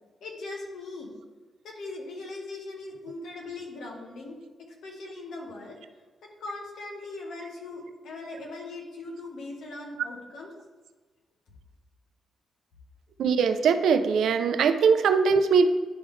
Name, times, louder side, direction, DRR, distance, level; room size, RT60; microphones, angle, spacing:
voice 1, 0.2-1.1 1.6-4.4 4.8-5.8 6.4-10.5, left 2 dB, 75° left, 0 dB, 1.2 m, -39 dB
voice 2, 13.2-15.7, right 5 dB, 75° right, 9 dB, 0.4 m, -21 dB
10.0 x 3.6 x 3.2 m, 1.3 s
cardioid pair, 135°, 0 cm